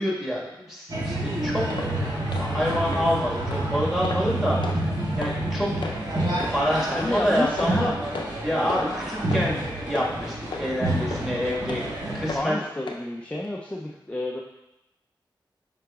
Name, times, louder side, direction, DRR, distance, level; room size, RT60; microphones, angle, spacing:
voice 1, 0.0-4.6 5.2-5.7 6.5-7.9 8.4-9.6 9.9-11.8 12.1-12.6, equal, 5° right, -4 dB, 1.5 m, -27 dB
sound 1, 0.9-12.4, right 1 dB, 50° right, 1.5 m, -28 dB
sound 2, 1.7-1.9 2.3-2.5 2.9-3.0 3.5-3.6 4.0-4.3 4.6-4.8 5.2-5.4 5.8-6.0 6.4-6.5 7.0-7.1 7.6-7.8 8.1-8.4 8.7-8.9 9.3-9.5 9.9-10.1 10.5-10.7 11.1-11.2 11.7-11.8 12.3-12.4 12.9-13.0 13.4-13.5, left 3 dB, 65° left, 0.6 m, -33 dB
voice 2, 6.9-7.9 12.3-14.4, left 1 dB, 15° left, -1 dB, 0.4 m, -30 dB
5.9 x 3.8 x 2.3 m, 0.93 s
cardioid pair, 45°, 9 cm